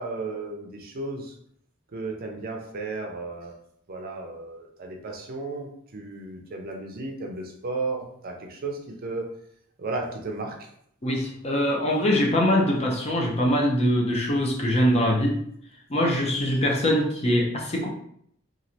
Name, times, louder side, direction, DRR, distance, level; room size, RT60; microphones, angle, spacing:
voice 1, 0.0-1.3 1.9-3.5 3.9-9.3 9.8-10.5, right 3 dB, 45° right, 2 dB, 0.5 m, -34 dB
voice 2, 11.0-15.4 15.9-17.9, equal, 30° left, -1 dB, 0.6 m, -23 dB
3.1 x 2.4 x 2.7 m, 0.68 s
head